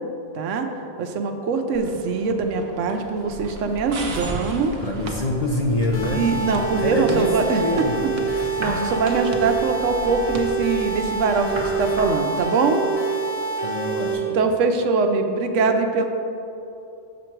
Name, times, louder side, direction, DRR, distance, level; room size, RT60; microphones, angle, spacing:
voice 1, 0.3-0.7 1.0-4.7 6.1-7.6 8.6-12.8 14.3-16.0, right 4 dB, 85° right, 5 dB, 0.9 m, -22 dB
sound 1, 1.7-12.2, right 2 dB, 60° right, 0.9 m, -39 dB
sound 2, 3.3-12.2, equal, 25° right, 1.2 m, -36 dB
voice 2, 4.8-6.3 6.6-8.2 13.6-14.4, left 1 dB, 40° left, -1 dB, 0.6 m, -26 dB
sound 3, 5.9-14.1, right 4 dB, 60° left, 1.1 m, -27 dB
7.0 x 6.2 x 4.5 m, 2.8 s
omnidirectional pair, 1.2 m